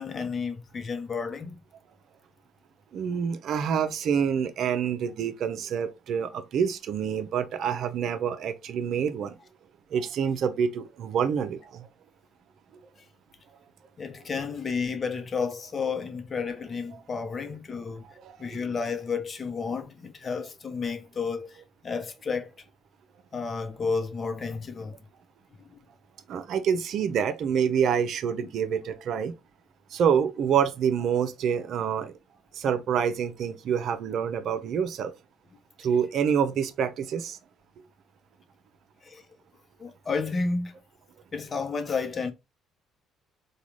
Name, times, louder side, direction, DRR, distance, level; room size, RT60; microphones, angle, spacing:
voice 1, 0.0-1.6 14.0-18.1 18.4-22.5 23.3-25.0 25.6-25.8 28.4-28.5 39.0-39.2 39.8-40.7 41.3-42.3, left 5 dB, 40° left, 0.7 m, -31 dB
voice 2, 2.9-9.4 9.9-11.9 18.2-18.3 26.3-29.3 29.9-32.1 32.5-35.1 35.8-37.4, right 7 dB, 65° right, 0.5 m, -27 dB
3.6 x 2.3 x 3.0 m
supercardioid pair, 60°, 0 cm